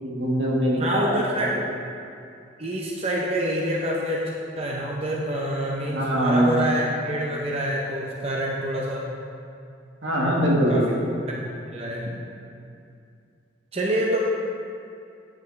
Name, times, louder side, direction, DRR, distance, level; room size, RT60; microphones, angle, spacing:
voice 1, 0.0-1.2 1.5-1.6 5.8-6.6 10.0-10.8, equal, 75° right, -3 dB, 1.4 m, -22 dB
voice 2, 0.8-1.5 2.6-9.1 10.7-10.9 11.7-12.1 13.7-14.2, right 1 dB, 30° right, -2 dB, 0.6 m, -26 dB
9.0 x 6.9 x 3.1 m, 2.5 s
head